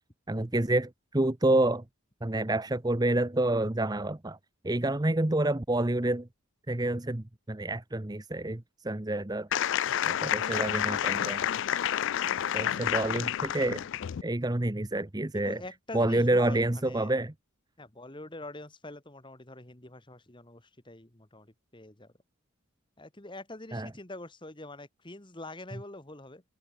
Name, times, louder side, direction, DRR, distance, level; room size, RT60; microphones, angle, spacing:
voice 1, 0.3-1.8 2.2-4.4 4.6-6.3 6.7-9.5 10.0-11.4 12.5-13.8 14.2-15.6 15.9-17.3 23.7-23.9, right 1 dB, 15° right, 0.8 m, -28 dB
sound 1, 9.5-14.2, left 10 dB, 55° left, 0.3 m, -29 dB
voice 2, 15.3-17.1 17.8-22.1 23.0-26.4, left 2 dB, 20° left, 1.6 m, -45 dB
head